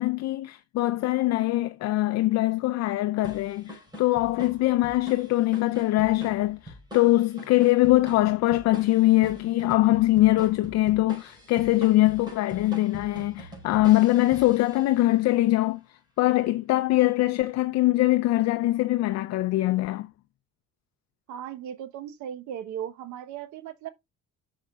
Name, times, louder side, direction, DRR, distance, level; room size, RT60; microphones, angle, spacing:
voice 1, 0.0-20.1, left 17 dB, 65° left, 0.6 m, -23 dB
sound 1, 3.2-15.2, equal, 15° right, 4.7 m, -44 dB
voice 2, 21.3-23.9, right 9 dB, 75° right, 1.0 m, -37 dB
9.6 x 6.4 x 2.3 m
cardioid pair, 125°, 29 cm